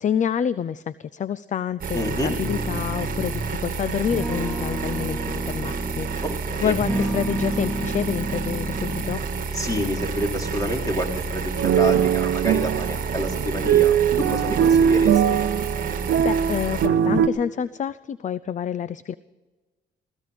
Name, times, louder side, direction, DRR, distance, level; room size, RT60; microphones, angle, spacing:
voice 1, 0.0-6.2 6.6-9.2 16.0-19.1, left 8 dB, 40° left, 17 dB, 0.5 m, -28 dB
sound 1, 1.8-16.9, right 4 dB, 45° right, 1.5 m, -30 dB
voice 2, 1.9-2.4 6.2-6.7 9.5-15.4, equal, 20° left, 2 dB, 3.6 m, -28 dB
sound 2, 2.4-3.5 4.1-6.4 6.8-9.4, right 1 dB, 5° left, 1.6 m, -31 dB
sound 3, 11.6-17.3, right 9 dB, 70° right, 0.8 m, -21 dB
16.5 x 16.0 x 5.2 m, 1.2 s
cardioid pair, 90°, 20 cm